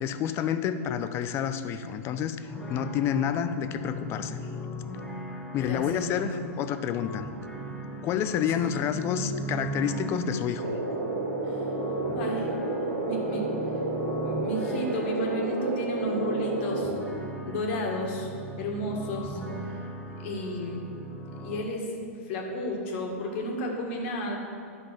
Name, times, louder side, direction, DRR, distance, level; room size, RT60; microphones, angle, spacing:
voice 1, 0.0-2.4 2.7-4.4 5.5-7.2 8.0-10.7, left 8 dB, 35° left, 10 dB, 0.6 m, -29 dB
sound 1, 2.4-21.6, right 1 dB, 5° left, 1.2 m, -39 dB
voice 2, 5.6-6.5 8.6-8.7 11.4-11.6 12.2-12.5 13.0-13.5 14.2-16.9 17.4-18.3 18.6-19.4 20.2-20.9 21.4-24.4, equal, 55° left, 0 dB, 1.9 m, -32 dB
sound 2, 10.6-16.9, right 2 dB, 70° right, 2.1 m, -30 dB
10.5 x 5.5 x 5.9 m, 2.4 s
hypercardioid pair, 115°, 8 cm